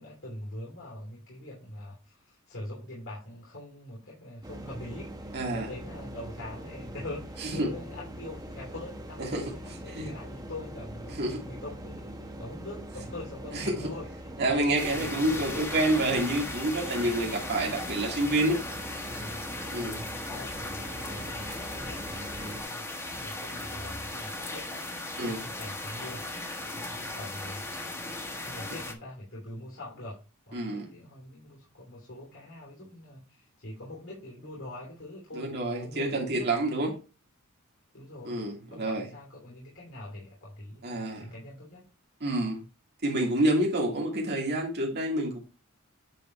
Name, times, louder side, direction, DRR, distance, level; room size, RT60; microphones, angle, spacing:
voice 1, 0.0-14.3 14.9-15.8 17.3-17.6 19.1-24.7 25.3-26.3 26.7-28.0 28.3-30.2 30.5-36.5 37.9-41.9, left 1 dB, 65° left, -4 dB, 2.9 m, -44 dB
sound 1, 4.4-22.6, equal, 20° right, 1.1 m, -42 dB
voice 2, 5.3-5.7 7.4-7.7 9.2-9.4 9.9-10.1 11.2-11.4 13.5-13.7 14.4-18.6 19.7-20.0 25.2-25.4 30.5-30.9 35.3-36.9 38.2-39.0 40.8-41.3 42.2-42.6 43.0-45.4, right 1 dB, 50° right, -1 dB, 2.4 m, -28 dB
sound 2, 14.8-28.9, left 2 dB, 15° left, 1.4 m, -37 dB
9.3 x 3.9 x 4.3 m, 0.33 s
head